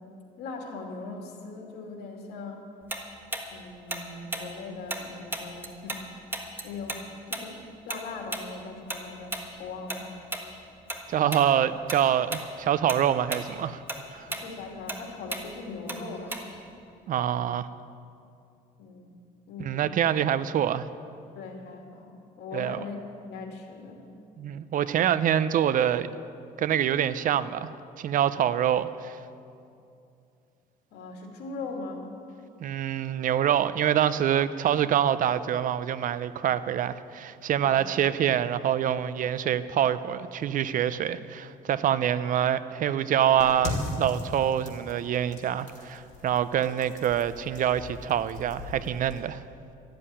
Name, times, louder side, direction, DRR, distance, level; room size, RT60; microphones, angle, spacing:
voice 1, 0.4-2.7 3.5-6.0 6.6-7.6 7.9-10.1 14.3-16.8 18.8-19.1 19.5-19.8 21.4-23.0 23.2-24.0 30.9-32.1 37.6-37.9, left 3 dB, 75° left, 1 dB, 2.6 m, -40 dB
Tick-tock, 2.9-6.0 6.3-11.0 11.3-11.5 11.9-12.5 12.8-16.7, right 1 dB, 10° right, 1.4 m, -35 dB
voice 2, 11.1-13.8 14.1-14.3 17.1-17.7 19.6-20.9 22.5-22.8 24.4-26.1 26.6-27.7 28.0-29.2 32.6-49.4, right 10 dB, 50° right, 15 dB, 0.6 m, -25 dB
sound 1, 43.4-49.2, left 2 dB, 45° left, 3.0 m, -38 dB
14.0 x 7.7 x 9.9 m, 2.6 s
cardioid pair, 110°, 17 cm